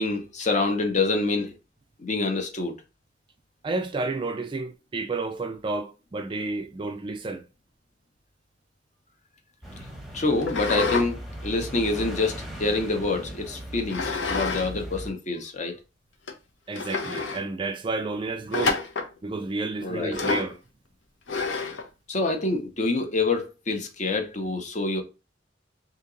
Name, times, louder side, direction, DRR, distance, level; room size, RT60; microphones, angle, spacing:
voice 1, 0.0-1.6 2.0-2.8 10.1-15.8 19.8-20.2 22.1-25.0, left 3 dB, 40° left, 0.7 m, -26 dB
voice 2, 3.6-7.4 16.7-18.8 19.2-20.6, right 3 dB, 25° right, 0.3 m, -31 dB
sound 1, 9.6-15.1, equal, ahead, 0.9 m, -38 dB
sound 2, 10.4-11.1 11.5-12.9 13.9-14.7 15.0-15.1 15.8-15.9 16.3-16.4 16.7-17.4 18.5-19.1 20.1-20.5 21.3-21.9, left 4 dB, 80° left, 0.7 m, -28 dB
2.9 x 2.8 x 3.7 m
head